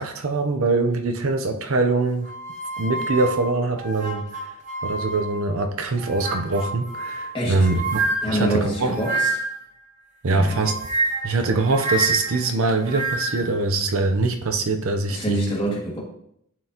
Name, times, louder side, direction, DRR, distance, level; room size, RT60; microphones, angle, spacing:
voice 1, 0.0-2.3 2.8-4.5 4.8-9.0 10.2-10.7 11.2-15.4, right 3 dB, 70° right, 5 dB, 0.7 m, -23 dB
sound 1, 2.2-5.5 6.0-9.7 10.5-13.5, right 2 dB, 35° right, 1.1 m, -28 dB
voice 2, 7.3-7.7 8.2-9.3 10.3-10.6 15.1-16.0, right 1 dB, 25° left, -4 dB, 2.0 m, -26 dB
11.0 x 4.6 x 2.9 m, 0.72 s
head